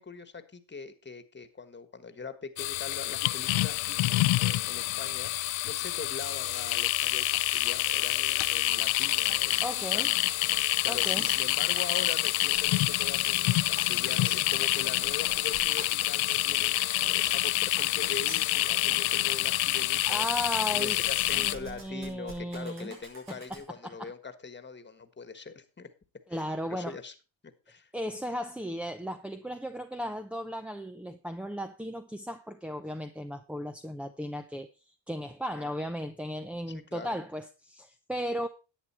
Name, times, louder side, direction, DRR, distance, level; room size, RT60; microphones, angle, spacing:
voice 1, 0.0-10.2 10.8-16.8 17.0-20.3 20.7-25.9 26.3-27.1 27.4-27.9 35.6-35.7 36.7-37.1, left 4 dB, 25° left, 1.4 m, -42 dB
sound 1, 2.6-21.6, left 17 dB, 80° left, 0.6 m, -27 dB
sound 2, 6.5-6.8 7.0-7.7 8.0-8.1 8.3-23.7, right 3 dB, 85° right, 5.0 m, -47 dB
voice 2, 9.6-10.1 10.9-11.3 20.1-23.0 23.3-24.1 26.3-27.0 27.9-38.5, equal, 5° right, 0.5 m, -36 dB
11.0 x 8.1 x 4.4 m
cardioid pair, 85°, 47 cm